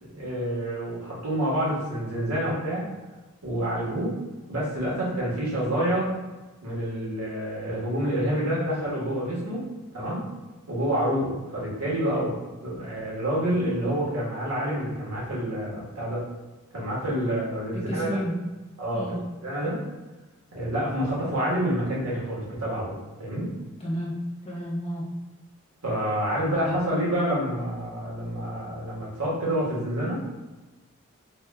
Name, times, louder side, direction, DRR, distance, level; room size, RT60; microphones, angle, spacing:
voice 1, 0.0-2.9 3.4-4.1 4.5-6.1 6.6-9.6 9.9-10.2 10.7-12.3 12.6-16.2 16.7-18.1 18.8-19.8 20.5-23.5 25.8-30.2, right 1 dB, 90° right, -6 dB, 1.4 m, -28 dB
voice 2, 17.7-18.4 18.9-19.2 23.8-24.2 24.4-25.1, equal, 30° left, -4 dB, 0.7 m, -31 dB
3.5 x 2.3 x 3.3 m, 1.2 s
head